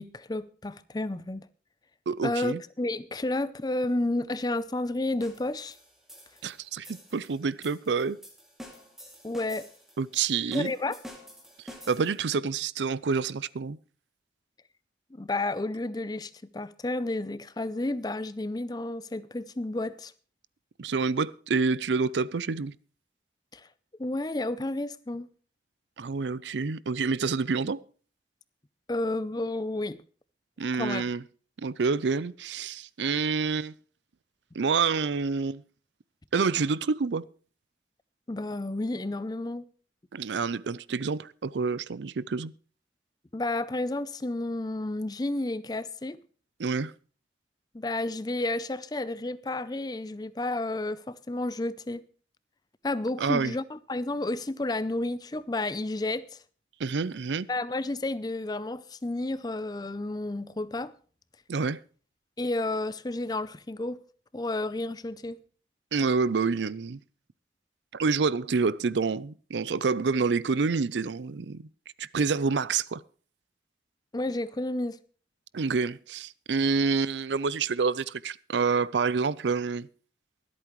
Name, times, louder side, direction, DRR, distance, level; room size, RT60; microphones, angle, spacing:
voice 1, 0.0-1.5 2.2-5.7 9.2-9.7 10.5-11.0 15.1-20.1 23.5-23.7 24.0-25.3 28.9-30.0 30.8-31.0 38.3-39.7 43.3-46.2 47.7-52.0 52.8-56.4 57.5-60.9 62.4-64.0 64.3-65.4 74.1-75.0, left 2 dB, 25° left, 0.5 m, -31 dB
voice 2, 2.1-2.6 6.4-8.2 10.0-10.7 11.9-13.8 20.8-22.7 26.0-27.8 30.6-31.2 31.6-33.7 34.5-35.6 36.3-37.3 40.1-42.5 46.6-46.9 53.2-53.5 56.8-57.5 61.5-61.8 65.9-67.0 67.9-71.7 72.0-73.0 75.5-79.9, right 4 dB, 90° right, 0.5 m, -28 dB
sound 1, 5.2-12.3, equal, ahead, 2.4 m, -49 dB
23.5 x 8.6 x 3.1 m
head